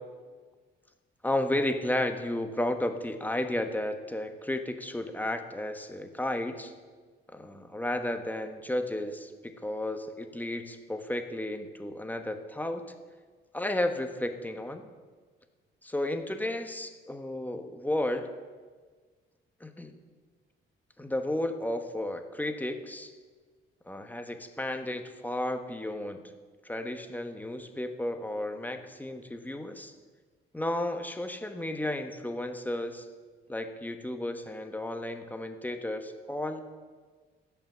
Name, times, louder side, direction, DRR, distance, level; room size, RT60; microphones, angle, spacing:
voice 1, 1.2-6.7 7.3-12.8 13.5-14.9 15.8-18.3 19.6-20.0 21.0-23.1 23.9-26.2 26.6-29.9 30.5-33.1 33.5-36.6, left 1 dB, 10° left, 7 dB, 1.1 m, -33 dB
15.0 x 5.8 x 7.4 m, 1.5 s
cardioid pair, 90°, 20 cm